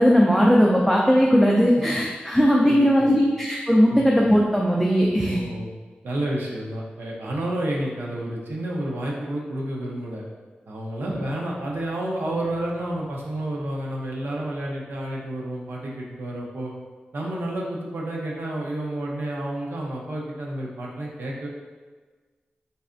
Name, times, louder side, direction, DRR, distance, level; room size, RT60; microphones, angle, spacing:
voice 1, 0.0-5.4, equal, ahead, -3 dB, 0.4 m, -18 dB
voice 2, 2.6-3.3 3.9-4.1 5.3-5.7 6.0-10.2 10.7-16.7 17.1-21.5, right 1 dB, 80° right, -3 dB, 0.7 m, -30 dB
4.0 x 3.2 x 2.5 m, 1.4 s
wide cardioid pair, 110°, 4 cm